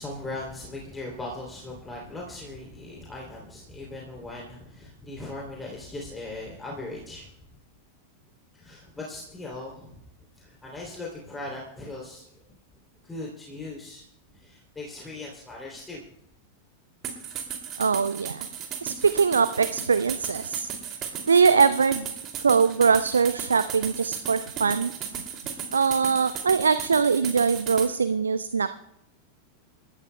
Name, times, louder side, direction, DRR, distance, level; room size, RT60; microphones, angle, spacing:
voice 1, 0.0-7.3 8.5-10.0 10.3-12.6 13.0-14.0 14.3-16.0, left 2 dB, 10° left, -2 dB, 3.0 m, -39 dB
sound 1, 17.0-27.9, right 8 dB, 35° right, 2.5 m, -35 dB
voice 2, 17.8-18.5 18.8-20.7 21.3-22.1 22.4-24.9 25.7-28.7, right 5 dB, 75° right, 13 dB, 0.4 m, -22 dB
27.5 x 14.5 x 2.2 m, 0.80 s
figure-of-eight pair, 90°, 0 cm